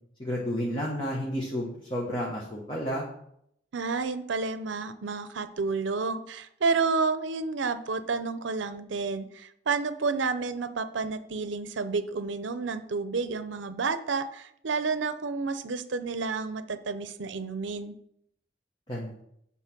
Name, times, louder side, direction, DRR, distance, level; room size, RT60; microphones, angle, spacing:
voice 1, 0.2-3.0 18.9-19.2, equal, 25° left, -4 dB, 1.2 m, -31 dB
voice 2, 3.7-17.9, right 4 dB, 80° right, 11 dB, 0.6 m, -30 dB
8.1 x 4.1 x 6.0 m, 0.73 s
head